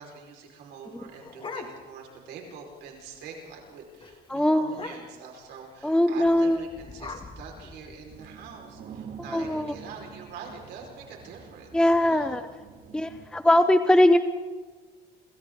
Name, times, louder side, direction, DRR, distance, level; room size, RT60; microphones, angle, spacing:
voice 1, 0.0-12.4 13.3-13.7, right 5 dB, 80° right, 1 dB, 4.9 m, -44 dB
sound 1, 0.8-2.1 2.5-2.6 2.8-3.2 3.5-3.7 4.0-4.1 4.7-5.3 6.2-8.3, left 4 dB, 30° left, 2.4 m, -42 dB
voice 2, 4.3-4.7 5.8-6.6 9.3-9.7 11.7-12.4 12.9-14.2, left 1 dB, 5° left, 10 dB, 0.7 m, -21 dB
sound 2, 8.1-13.2, right 6 dB, 60° right, 2.4 m, -46 dB
27.5 x 27.0 x 3.9 m, 1.4 s
cardioid pair, 110°, 17 cm